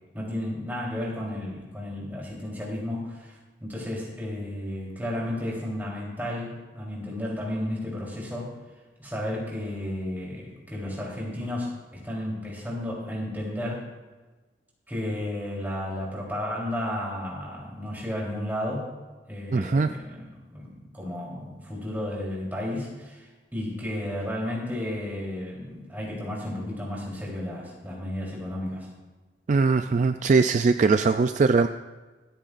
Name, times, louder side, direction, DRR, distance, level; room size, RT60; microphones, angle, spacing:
voice 1, 0.1-8.6 9.0-13.9 14.9-18.9 19.3-28.9, left 1 dB, 10° right, -4 dB, 3.5 m, -33 dB
voice 2, 19.5-19.9 29.5-31.7, right 4 dB, 45° right, 9 dB, 0.3 m, -21 dB
25.5 x 9.1 x 2.5 m, 1.2 s
head